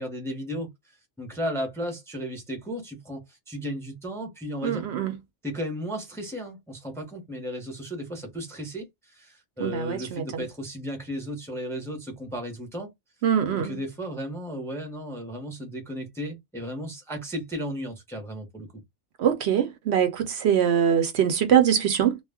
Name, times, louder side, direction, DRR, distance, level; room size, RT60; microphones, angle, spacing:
voice 1, 0.0-4.9 5.4-12.9 13.5-18.8, equal, 5° left, 0.6 m, -35 dB
voice 2, 4.6-5.2 9.6-10.4 13.2-13.8 19.2-22.2, right 9 dB, 70° right, 0.8 m, -23 dB
2.3 x 2.1 x 3.4 m
omnidirectional pair, 1.2 m